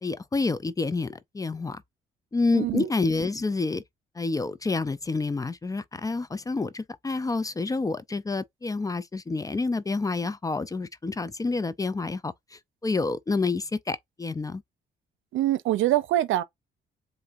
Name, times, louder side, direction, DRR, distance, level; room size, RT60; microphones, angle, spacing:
voice 1, 0.0-1.8 2.3-3.8 4.2-14.6, left 3 dB, 15° left, 0.4 m, -28 dB
voice 2, 2.5-2.9 15.3-16.4, right 14 dB, 80° right, 0.6 m, -24 dB
7.4 x 2.6 x 2.5 m
cardioid pair, 90°, 20 cm